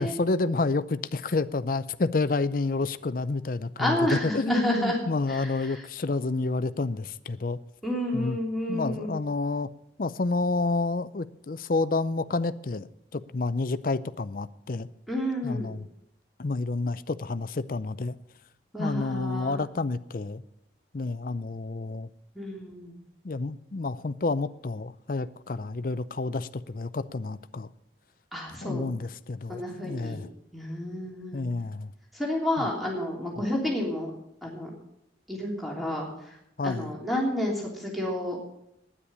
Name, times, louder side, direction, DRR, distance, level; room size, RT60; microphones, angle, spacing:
voice 1, 0.0-7.6 8.1-8.4 8.7-9.7 10.0-12.9 13.1-14.9 15.4-15.9 16.4-18.2 18.8-20.4 20.9-22.1 23.2-27.7 28.6-30.3 31.3-31.9 32.6-32.7 36.6-36.9, left 3 dB, 50° left, 0.5 m, -29 dB
voice 2, 3.8-5.0 5.3-5.8 7.8-9.2 15.1-15.7 18.7-19.6 22.3-23.0 28.3-28.9 29.5-30.2 30.5-31.4 32.1-34.1 34.4-34.7 35.3-36.4 36.6-38.4, left 1 dB, ahead, 3.1 m, -30 dB
9.9 x 9.8 x 8.7 m
head